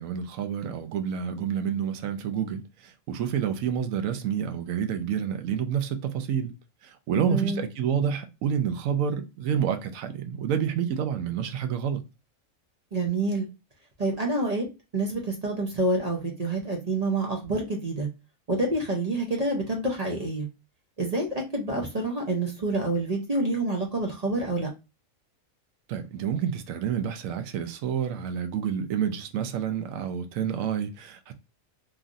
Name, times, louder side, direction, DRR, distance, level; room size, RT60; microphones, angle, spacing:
voice 1, 0.0-6.5 6.8-12.0 25.9-31.3, right 8 dB, 85° right, 1.0 m, -29 dB
voice 2, 7.1-7.6 12.9-13.5 14.0-14.7 14.9-18.1 18.5-20.5 21.0-21.3 21.5-24.7, right 2 dB, 40° right, 0.6 m, -27 dB
3.1 x 2.5 x 2.5 m
omnidirectional pair, 1.4 m